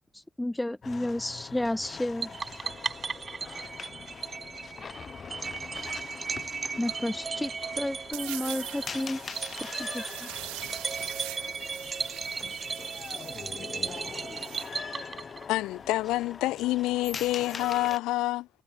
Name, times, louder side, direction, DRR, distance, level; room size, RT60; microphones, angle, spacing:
voice 1, 0.4-2.3 6.8-9.2 9.8-10.3, left 1 dB, 10° left, 0.7 m, -31 dB
sound 1, 0.8-18.0, left 6 dB, 50° left, 0.9 m, -43 dB
sound 2, 2.2-15.7, right 5 dB, 45° right, 0.4 m, -36 dB
voice 2, 4.3-6.8 13.2-15.8, left 4 dB, 35° left, 7.2 m, -57 dB
sound 3, 8.1-14.7, right 25 dB, 85° right, 1.6 m, -43 dB
voice 3, 15.5-18.5, left 17 dB, 80° left, 0.3 m, -27 dB
hypercardioid pair, 45°, 0 cm